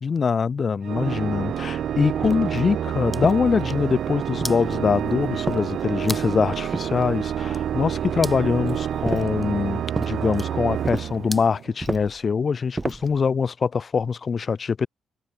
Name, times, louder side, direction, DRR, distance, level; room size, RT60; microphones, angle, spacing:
voice 1, 0.0-14.9, left 5 dB, 40° left, 1.7 m, -23 dB
Organ, 0.8-11.8, right 9 dB, 65° right, 2.7 m, -28 dB
sound 1, 2.2-2.6 3.2-3.9 4.4-4.9 5.5-6.1 6.7-7.4 9.0-9.4 9.9-10.2 10.8-11.2 11.8-12.2 12.8-13.2, right 3 dB, 20° right, 1.2 m, -32 dB
sound 2, 2.8-11.7, left 1 dB, 5° left, 2.2 m, -42 dB
cardioid pair, 90°, 0 cm